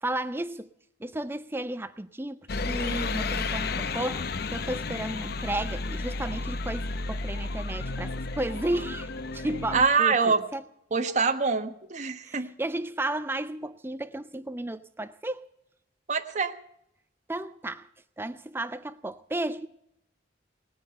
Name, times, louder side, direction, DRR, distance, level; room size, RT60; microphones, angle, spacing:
voice 1, 0.0-0.7 1.0-10.6 12.2-15.4 17.3-17.9 18.2-19.7, right 1 dB, 10° right, 0.6 m, -33 dB
sound 1, 2.5-9.9, left 3 dB, 55° left, 0.7 m, -32 dB
voice 2, 9.7-10.4 10.9-12.5 16.1-16.5, right 5 dB, 40° right, 1.3 m, -25 dB
19.0 x 9.5 x 7.8 m
head